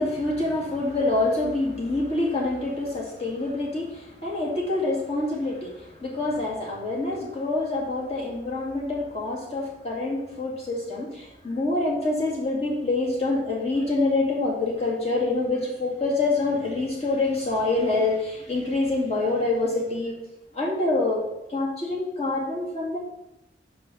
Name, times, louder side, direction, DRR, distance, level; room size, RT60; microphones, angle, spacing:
voice 1, 0.0-20.1 20.5-21.2 21.5-23.0, left 2 dB, 35° left, -4 dB, 2.2 m, -26 dB
5.5 x 4.8 x 6.1 m, 0.90 s
head